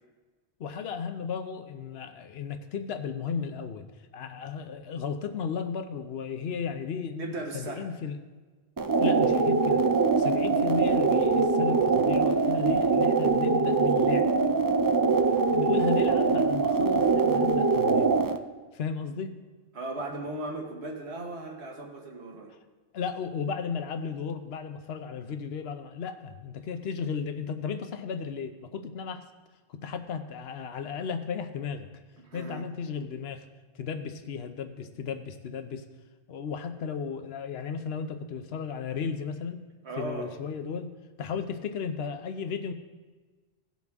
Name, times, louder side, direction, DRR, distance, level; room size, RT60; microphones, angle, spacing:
voice 1, 0.6-3.8 4.1-8.2 9.0-9.8 10.2-14.2 15.5-18.2 18.7-19.3 22.9-29.2 29.7-31.9 32.3-33.4 33.8-35.8 36.3-39.6 39.9-40.9 41.2-42.7, left 6 dB, 70° left, 8 dB, 1.0 m, -34 dB
voice 2, 7.2-7.9 19.7-22.5 32.2-32.6 39.8-40.3, right 2 dB, 75° right, 0 dB, 1.6 m, -37 dB
sound 1, 8.8-18.4, right 4 dB, 35° right, 0.3 m, -23 dB
17.5 x 5.9 x 3.6 m, 1.3 s
omnidirectional pair, 1.1 m